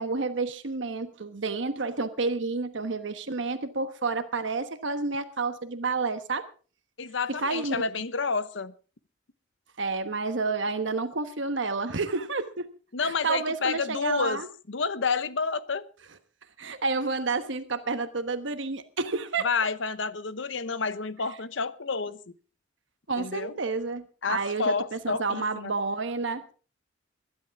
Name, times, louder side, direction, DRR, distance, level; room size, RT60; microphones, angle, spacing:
voice 1, 0.0-6.5 7.3-7.8 9.8-12.7 13.0-14.5 16.6-19.5 23.1-26.4, right 3 dB, 70° right, 9 dB, 1.2 m, -30 dB
voice 2, 7.0-8.7 12.9-14.4 14.7-15.8 19.4-22.2 23.2-23.6 24.2-25.7, left 4 dB, 70° left, 14 dB, 0.9 m, -29 dB
22.0 x 11.0 x 3.6 m, 0.37 s
head